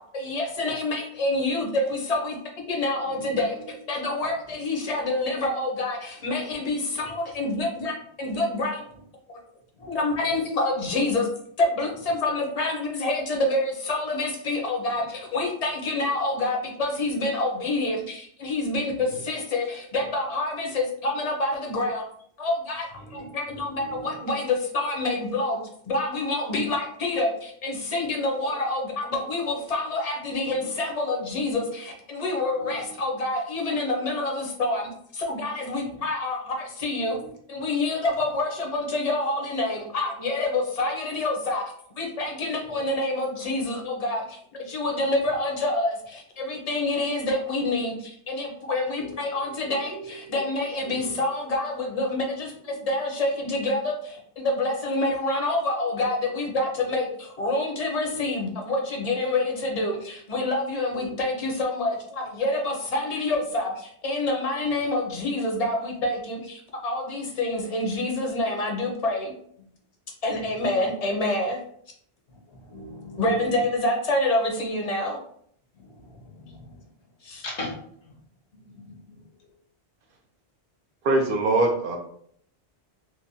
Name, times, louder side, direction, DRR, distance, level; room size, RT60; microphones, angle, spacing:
voice 1, 0.1-2.4 2.7-8.8 9.3-9.4 9.8-11.3 11.6-22.0 22.4-37.2 37.5-41.6 42.0-69.3 70.2-71.6 73.2-75.2 77.2-77.4, left 2 dB, 45° left, 1 dB, 0.6 m, -27 dB
voice 2, 23.7-24.2 30.4-30.5 31.5-31.6 32.5-32.9 35.8-35.9 36.9-37.3 37.6-37.7 42.6-42.8 49.0-49.1 49.9-50.4 50.8-51.1 52.7-52.8 58.0-58.2 60.9-61.1 72.5-73.2 75.8-76.7 77.4-77.8 78.5-79.2, equal, 80° left, -2 dB, 1.1 m, -41 dB
voice 3, 81.0-82.0, right 2 dB, 60° right, 3 dB, 0.6 m, -22 dB
2.9 x 2.1 x 2.6 m, 0.65 s
omnidirectional pair, 1.1 m